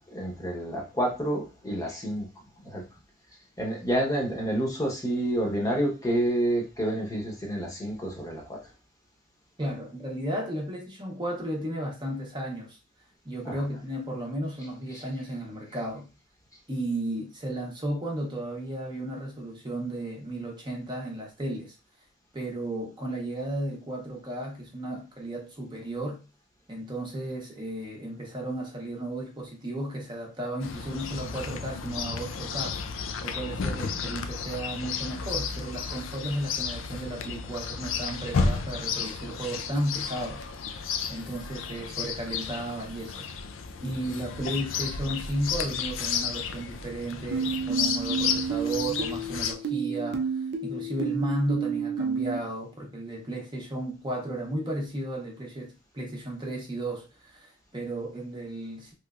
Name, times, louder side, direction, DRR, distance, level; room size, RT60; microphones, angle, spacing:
voice 1, 0.1-2.3 2.6-2.8 3.6-8.6 13.4-13.5 14.9-15.0, right 1 dB, 15° left, 0.8 m, -29 dB
voice 2, 9.6-12.8 13.2-16.1 16.7-21.7 22.3-26.2 26.7-32.8 33.2-40.7 41.1-43.3 43.8-58.9, right 1 dB, 25° right, 0.8 m, -34 dB
Chirp tweet, 30.6-49.5, left 5 dB, 80° left, 0.4 m, -32 dB
sound 1, 47.3-52.4, right 5 dB, 60° right, 0.5 m, -30 dB
3.3 x 3.0 x 2.4 m
head